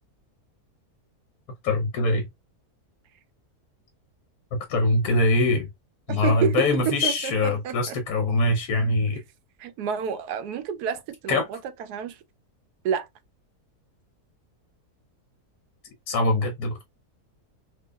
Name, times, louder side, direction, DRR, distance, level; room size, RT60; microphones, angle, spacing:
voice 1, 1.6-2.2 4.5-5.7 6.1-9.2 11.3-11.5 16.1-16.8, left 2 dB, 75° left, 1.3 m, -23 dB
voice 2, 6.1-8.0 9.6-12.2 12.8-13.1, right 8 dB, 85° right, 1.1 m, -29 dB
4.6 x 2.3 x 2.2 m
omnidirectional pair, 1.6 m